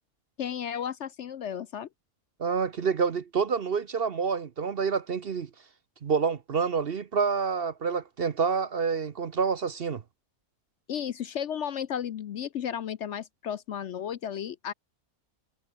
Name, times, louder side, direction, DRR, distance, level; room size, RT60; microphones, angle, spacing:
voice 1, 0.4-1.9 10.9-14.7, left 9 dB, 60° left, 0.9 m, -34 dB
voice 2, 2.4-5.5 6.0-10.0, right 5 dB, 50° right, 0.9 m, -28 dB
omnidirectional pair, 1.5 m